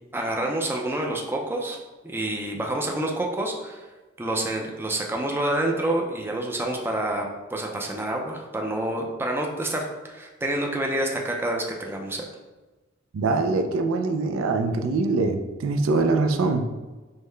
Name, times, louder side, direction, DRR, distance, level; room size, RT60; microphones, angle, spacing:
voice 1, 0.1-1.8 2.0-3.9 4.2-12.2, right 1 dB, 10° right, 0 dB, 0.4 m, -28 dB
voice 2, 13.1-16.7, right 3 dB, 90° right, 6 dB, 0.4 m, -23 dB
5.5 x 2.1 x 3.2 m, 1.2 s
head